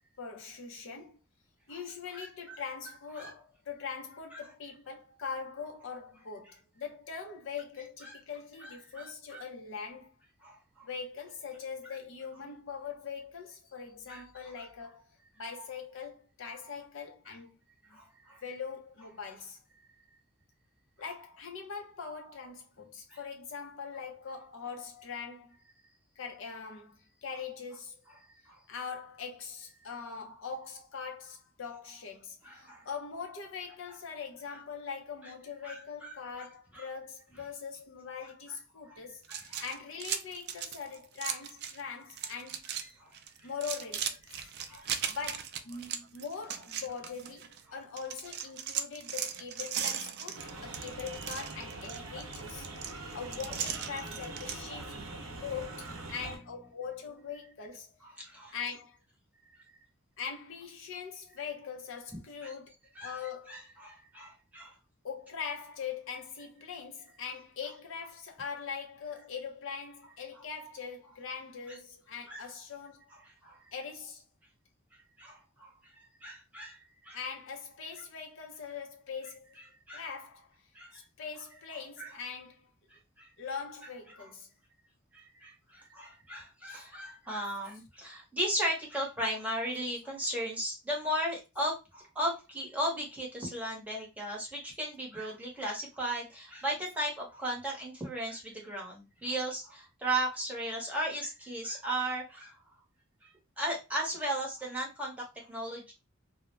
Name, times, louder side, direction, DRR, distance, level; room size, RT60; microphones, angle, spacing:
voice 1, 0.2-1.2 1.7-10.1 10.8-15.1 15.4-17.6 17.9-18.0 18.4-19.6 21.0-25.6 26.2-28.0 28.7-42.6 43.4-44.4 45.1-52.7 53.1-54.9 55.4-58.0 58.5-59.0 60.2-62.7 63.0-63.6 65.0-73.1 73.7-74.2 77.1-79.5 79.9-80.5 80.9-82.7 83.4-84.5 86.7-86.8, left 6 dB, 65° left, 0.5 m, -42 dB
voice 2, 2.1-2.6 3.2-3.3 8.0-8.2 8.6-9.4 10.4-10.9 14.1-14.2 17.9-18.4 23.1-23.2 28.5-28.6 32.4-32.9 34.5-34.6 35.6-36.2 36.7-36.9 38.9-39.0 39.3-39.6 41.2-41.3 42.8-43.2 44.4-45.2 52.8-53.0 55.0-55.4 58.0-58.6 62.4-62.5 63.0-63.2 63.5-64.7 71.7-71.8 72.3-72.4 73.1-73.6 74.9-76.8 77.0-77.2 79.9-80.0 80.7-81.0 82.0-82.1 82.9-83.3 84.1-84.2 85.1-102.6 103.2-105.9, right 1 dB, 5° right, 0.8 m, -37 dB
sound 1, 39.2-41.8 42.1-42.9 43.1-47.6 48.0-54.6, right 9 dB, 50° right, 0.3 m, -37 dB
sound 2, 50.3-56.4, right 2 dB, 70° right, 0.7 m, -43 dB
2.3 x 2.0 x 3.1 m
head